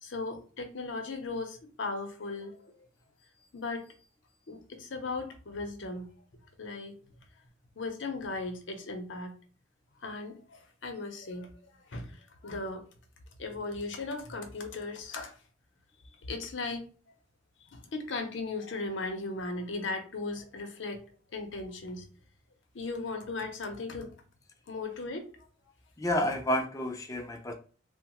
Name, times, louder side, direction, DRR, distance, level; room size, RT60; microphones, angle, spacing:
voice 1, 0.0-2.7 3.5-3.9 4.5-6.1 6.6-7.0 7.8-9.3 10.0-11.5 11.9-12.8 13.4-15.3 16.2-16.9 17.6-21.0 21.3-22.1 22.7-24.1 24.7-25.3, left 3 dB, 80° left, 5 dB, 0.6 m, -37 dB
voice 2, 26.0-27.5, left 1 dB, 20° left, 5 dB, 0.4 m, -30 dB
2.8 x 2.1 x 2.9 m, 0.39 s
head